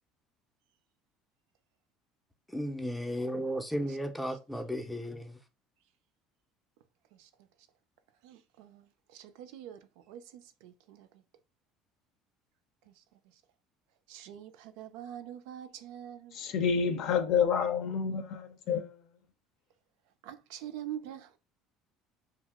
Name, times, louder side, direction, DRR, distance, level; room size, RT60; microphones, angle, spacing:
voice 1, 2.5-5.4, equal, 5° left, 0.5 m, -34 dB
voice 2, 7.1-7.5 8.2-11.2 12.9-13.0 13.3-13.4 14.1-16.4 20.2-21.4, right 10 dB, 80° right, 0.3 m, -45 dB
voice 3, 16.3-19.0, left 6 dB, 65° left, 0.5 m, -29 dB
2.7 x 2.0 x 3.4 m
supercardioid pair, 100°, 0 cm